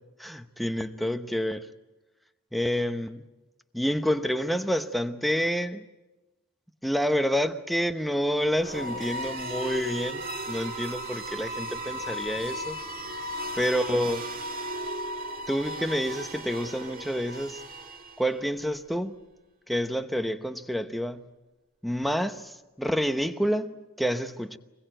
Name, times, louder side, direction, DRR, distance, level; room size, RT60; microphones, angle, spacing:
voice 1, 0.2-1.7 2.5-3.2 3.7-5.8 6.8-12.8 13.5-14.3 15.5-17.6 18.2-19.1 19.7-21.2 21.8-24.6, equal, ahead, 0.9 m, -28 dB
sound 1, 8.5-18.4, right 1 dB, 45° right, 2.0 m, -36 dB
26.0 x 21.0 x 9.0 m
head